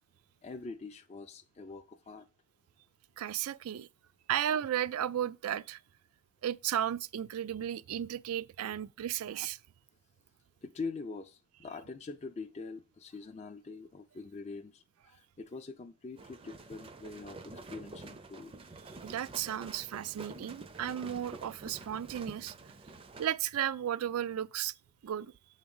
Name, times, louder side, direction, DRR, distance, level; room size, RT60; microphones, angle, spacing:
voice 1, 0.4-2.3 8.6-8.7 10.6-18.5, left 4 dB, 30° left, 0.4 m, -44 dB
voice 2, 3.2-3.9 4.3-5.8 6.4-9.6 19.0-22.5 23.2-24.7 25.0-25.3, right 10 dB, 80° right, 0.4 m, -34 dB
sound 1, 16.2-23.3, right 3 dB, 25° right, 0.5 m, -48 dB
7.8 x 3.6 x 5.3 m
head